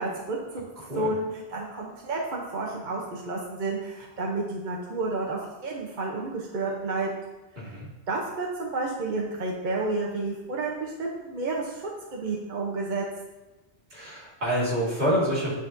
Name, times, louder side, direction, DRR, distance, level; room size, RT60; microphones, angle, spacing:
voice 1, 0.0-0.7 1.0-7.1 8.1-11.8 12.1-13.1, right 3 dB, 50° right, -3 dB, 0.9 m, -30 dB
voice 2, 0.8-1.1 7.6-7.9 13.9-15.5, equal, 75° right, -6 dB, 2.3 m, -27 dB
10.0 x 4.0 x 2.6 m, 1.1 s
omnidirectional pair, 1.1 m